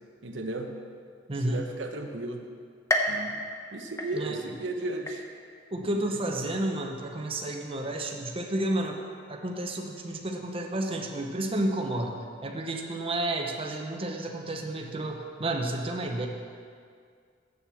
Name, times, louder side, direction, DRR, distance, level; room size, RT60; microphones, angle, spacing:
voice 1, 0.2-0.7 1.4-2.4 3.1-3.4 3.7-5.2 6.0-6.1, right 2 dB, 85° right, 3 dB, 0.9 m, -34 dB
voice 2, 1.3-1.6 4.1-4.4 5.7-9.0 9.3-12.2 12.4-16.3, right 1 dB, 30° right, 2 dB, 0.8 m, -31 dB
sound 1, 2.9-4.6 5.1-5.6 6.1-6.2 7.2-7.3, left 1 dB, 15° left, 0.9 m, -31 dB
7.9 x 7.3 x 7.0 m, 2.2 s
head